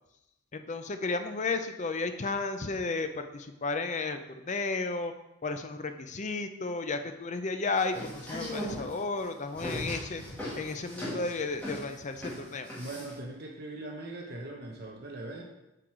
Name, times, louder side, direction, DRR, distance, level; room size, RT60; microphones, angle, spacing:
voice 1, 0.5-5.1 5.4-10.2 10.6-12.7, left 3 dB, 35° left, 8 dB, 0.5 m, -33 dB
sound 1, 7.8-13.2, equal, 5° left, 1.9 m, -38 dB
voice 2, 12.8-15.4, right 2 dB, 45° right, 0 dB, 0.8 m, -40 dB
7.7 x 4.6 x 4.8 m, 0.95 s
head